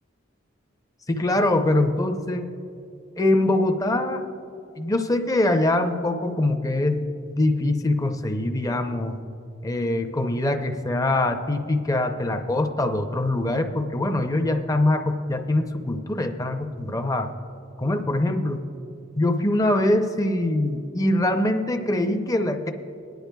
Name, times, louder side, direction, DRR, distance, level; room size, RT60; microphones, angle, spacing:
voice 1, 1.1-2.5 3.2-4.2 4.8-9.2 9.6-17.3 17.8-18.6 19.2-22.7, left 1 dB, 15° left, 5 dB, 0.5 m, -23 dB
20.0 x 10.5 x 2.3 m, 2.5 s
head